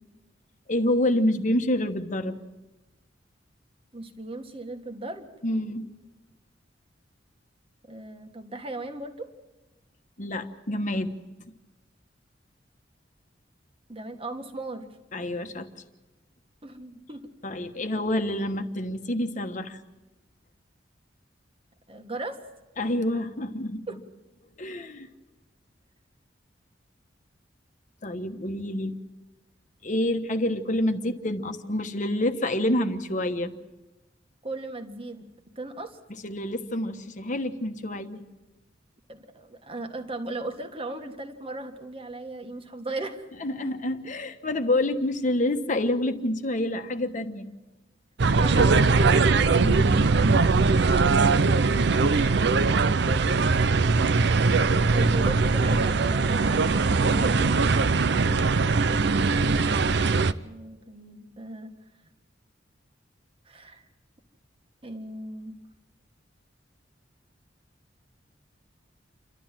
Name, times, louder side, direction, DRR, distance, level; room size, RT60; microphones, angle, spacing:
voice 1, 0.7-2.4 5.4-5.9 10.2-11.1 15.1-15.8 17.4-19.8 22.8-23.8 24.6-25.1 28.0-29.0 29.8-33.5 36.1-38.2 43.4-47.5 49.6-50.1 57.0-57.7, left 1 dB, 45° left, 7 dB, 1.3 m, -28 dB
voice 2, 3.9-5.3 7.9-9.3 13.9-14.9 16.6-17.3 21.9-22.4 23.9-24.0 34.4-35.3 35.5-36.0 39.1-43.3 48.3-49.3 52.1-52.8 54.9-57.0 60.4-61.8 63.4-63.8 64.8-65.6, right 2 dB, 30° right, 6 dB, 1.7 m, -37 dB
sound 1, 48.2-60.3, right 4 dB, 65° right, 0.6 m, -21 dB
28.5 x 12.5 x 7.5 m, 1.1 s
head